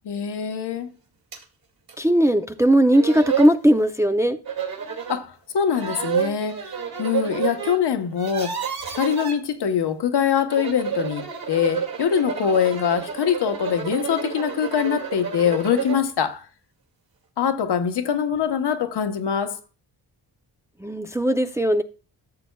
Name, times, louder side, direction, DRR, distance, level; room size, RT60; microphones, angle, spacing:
voice 1, 0.0-0.9 5.1-16.5 17.4-19.6, left 8 dB, 65° left, 1.1 m, -23 dB
sound 1, 1.3-1.4 1.9-2.0 2.6-2.7 2.9-3.6 4.5-5.2 5.7-7.8 8.1-9.4 10.4-16.1, right 7 dB, 55° right, 2.3 m, -29 dB
voice 2, 2.0-4.4 20.8-21.8, right 1 dB, 5° right, 0.5 m, -18 dB
12.5 x 6.9 x 2.3 m
cardioid pair, 70°, 43 cm